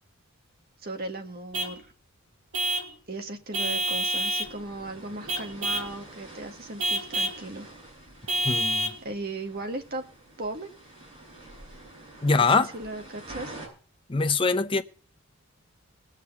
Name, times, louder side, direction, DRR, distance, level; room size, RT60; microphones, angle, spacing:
voice 1, 0.8-1.9 3.1-7.7 9.0-10.0 10.4-10.7 12.3-12.5 12.7-13.6, right 2 dB, 45° right, 1.7 m, -37 dB
Vehicle horn car horn honking / Truck, 1.5-1.8 2.5-2.9 3.5-4.5 5.3-5.9 6.8-7.4 8.3-9.0, right 1 dB, 80° right, 2.2 m, -28 dB
sound 1, 4.4-13.7, right 1 dB, 20° right, 7.3 m, -47 dB
voice 2, 8.4-8.9 12.2-12.7 14.1-14.8, left 4 dB, 25° left, 0.6 m, -23 dB
19.5 x 6.7 x 7.0 m
head